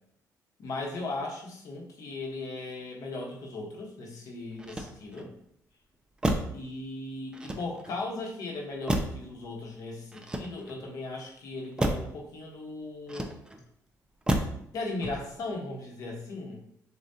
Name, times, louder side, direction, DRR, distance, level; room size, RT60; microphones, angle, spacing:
voice 1, 0.6-5.3 6.5-13.4 14.7-16.6, left 2 dB, 60° left, 0 dB, 1.2 m, -37 dB
Motor vehicle (road), 4.5-5.4 6.2-6.7 7.3-8.0 8.9-9.3 10.1-10.9 11.8-12.2 13.1-13.7 14.3-14.7 15.0-15.5, right 1 dB, 10° right, 0.5 m, -31 dB
7.0 x 2.4 x 2.8 m, 0.71 s
cardioid pair, 120°, 7 cm